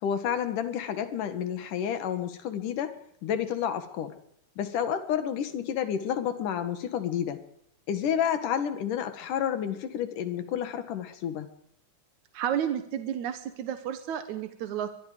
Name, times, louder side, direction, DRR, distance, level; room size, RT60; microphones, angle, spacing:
voice 1, 0.0-2.9 3.2-4.1 4.6-7.4 7.9-11.5, left 9 dB, 75° left, 9 dB, 3.3 m, -30 dB
voice 2, 12.3-14.9, right 9 dB, 70° right, 8 dB, 2.5 m, -31 dB
23.5 x 22.5 x 5.1 m, 0.72 s
omnidirectional pair, 3.7 m